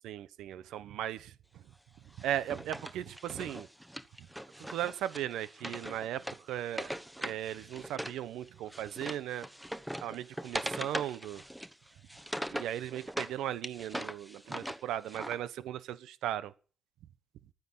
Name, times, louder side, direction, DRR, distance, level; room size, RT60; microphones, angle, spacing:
voice 1, 0.0-1.6 2.2-3.7 4.6-6.9 7.2-9.5 10.0-11.4 12.5-16.5, right 11 dB, 85° right, 1.0 m, -37 dB
Wood, 2.2-8.2 8.5-13.3 13.6-15.4, equal, 5° right, 1.1 m, -41 dB
13.5 x 9.6 x 8.6 m
cardioid pair, 90°, 0 cm